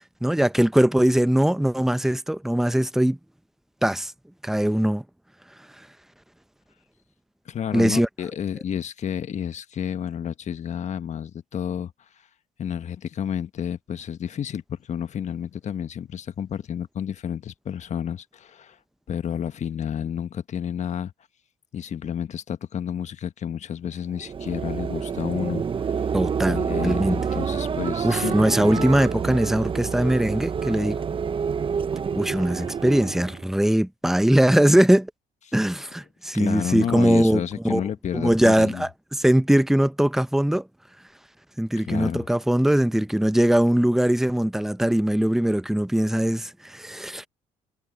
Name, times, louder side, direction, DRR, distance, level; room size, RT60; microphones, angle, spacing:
voice 1, 0.2-3.2 3.8-4.1 4.4-5.0 7.7-8.1 26.1-26.6 26.8-27.2 28.0-31.0 32.2-35.1 35.5-37.8 38.1-40.7 41.6-47.3, right 1 dB, ahead, 0.8 m, -21 dB
voice 2, 7.4-11.9 12.6-18.8 19.1-21.1 21.7-26.1 26.5-28.4 28.6-28.9 36.3-38.9 41.8-42.3, left 9 dB, 50° left, 1.4 m, -30 dB
sound 1, 24.1-33.5, right 6 dB, 35° right, 0.8 m, -28 dB
supercardioid pair, 70°, 16 cm